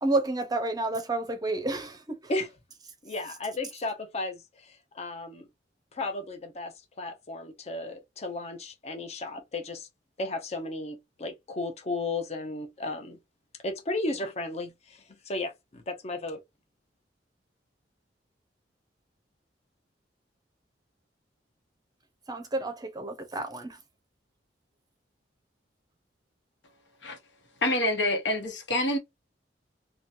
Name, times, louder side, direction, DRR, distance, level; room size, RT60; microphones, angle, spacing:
voice 1, 0.0-2.3 22.3-23.8, right 2 dB, 20° right, 0.6 m, -30 dB
voice 2, 3.0-5.5 5.9-9.9 10.2-13.2 13.6-16.4, left 2 dB, 35° left, 0.7 m, -34 dB
voice 3, 27.6-29.0, left 1 dB, 80° left, 1.0 m, -26 dB
2.9 x 2.2 x 2.6 m
head